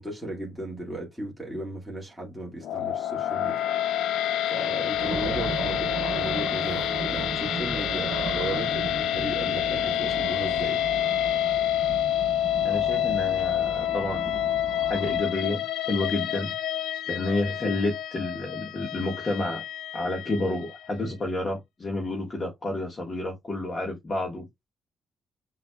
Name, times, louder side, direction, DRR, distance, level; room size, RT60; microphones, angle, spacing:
voice 1, 0.0-3.6 4.5-10.8, right 1 dB, 5° left, 2.2 m, -36 dB
sound 1, 2.6-20.9, left 11 dB, 85° left, 0.5 m, -28 dB
sound 2, 4.9-15.2, right 5 dB, 65° right, 1.0 m, -36 dB
voice 2, 5.1-5.5 12.6-14.4 14.9-16.5 17.1-19.6 19.9-24.5, left 2 dB, 30° left, 1.7 m, -30 dB
5.9 x 3.2 x 2.4 m
cardioid pair, 90°, 0 cm